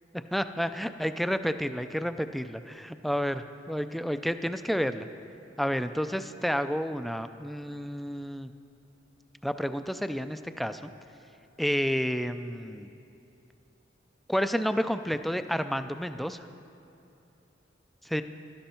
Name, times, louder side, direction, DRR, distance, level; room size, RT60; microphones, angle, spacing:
voice 1, 0.3-5.1 5.6-8.5 9.4-10.9 11.6-12.9 14.3-16.5 18.0-18.2, equal, ahead, 10 dB, 0.3 m, -30 dB
15.5 x 12.5 x 4.4 m, 2.8 s
head